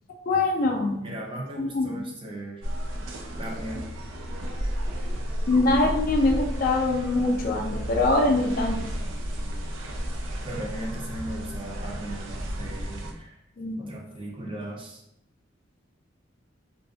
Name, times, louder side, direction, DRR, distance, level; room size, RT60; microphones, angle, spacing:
voice 1, 0.3-1.0 1.6-2.0 5.5-8.8 13.6-13.9, left 2 dB, 50° left, 1 dB, 0.4 m, -23 dB
voice 2, 1.0-2.7 3.4-3.8 5.0-5.1 10.4-13.4 13.8-15.0, right 1 dB, 25° right, -1 dB, 0.5 m, -37 dB
sound 1, 2.6-13.1, equal, 85° right, 0.4 m, -32 dB
2.5 x 2.4 x 2.4 m, 0.79 s
head